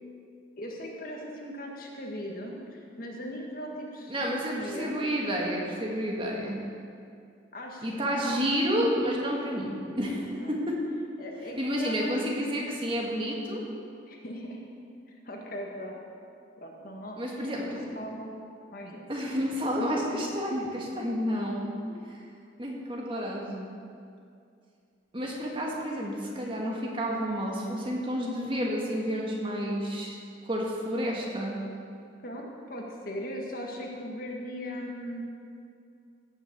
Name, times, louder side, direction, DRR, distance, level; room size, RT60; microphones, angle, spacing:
voice 1, 0.6-5.0 7.5-8.7 10.4-10.5 11.2-12.6 14.1-14.6 15.1-16.0 16.6-18.3 18.7-19.1 32.2-35.2, equal, 50° left, 0 dB, 1.7 m, -39 dB
voice 2, 4.1-6.6 7.8-10.8 11.6-13.6 17.2-17.9 19.1-21.7 22.1-22.2 22.6-23.6 25.1-30.2 30.4-31.5, equal, 25° right, -2 dB, 1.7 m, -30 dB
16.5 x 6.3 x 6.8 m, 2.4 s
head